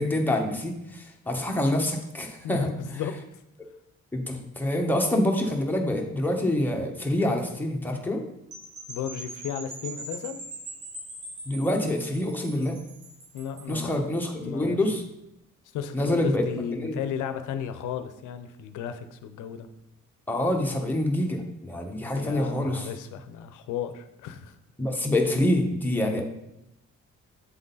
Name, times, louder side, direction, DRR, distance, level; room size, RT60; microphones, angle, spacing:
voice 1, 0.0-2.7 4.1-8.2 11.5-12.8 13.7-15.0 15.9-17.0 20.3-22.9 24.8-26.2, left 1 dB, 5° left, 1 dB, 1.1 m, -26 dB
voice 2, 2.4-3.1 8.9-10.4 12.5-12.8 13.3-14.1 14.4-14.8 15.7-19.7 22.1-24.5, left 8 dB, 85° left, 10 dB, 0.6 m, -35 dB
sound 1, 8.5-13.8, right 2 dB, 80° right, 2.1 m, -42 dB
8.0 x 3.7 x 4.0 m, 0.86 s
cardioid pair, 90°, 30 cm